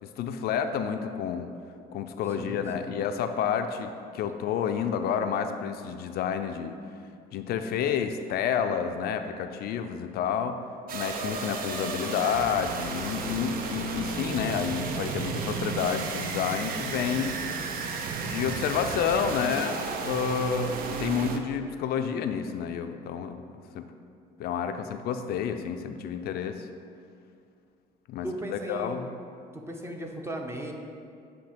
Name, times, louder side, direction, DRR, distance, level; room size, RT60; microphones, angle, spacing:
voice 1, 0.0-1.5 1.9-6.7 7.3-10.6 10.9-17.4 18.2-23.4 23.7-23.9 24.4-26.7 28.1-28.3 28.5-29.1, left 7 dB, 70° left, 7 dB, 0.4 m, -29 dB
voice 2, 2.3-3.0 28.2-29.0 29.5-30.7, right 1 dB, 15° right, 2 dB, 0.7 m, -37 dB
sound 1, 10.9-21.4, right 5 dB, 60° right, 0.6 m, -33 dB
7.9 x 2.8 x 5.1 m, 2.3 s
cardioid pair, 110°, 17 cm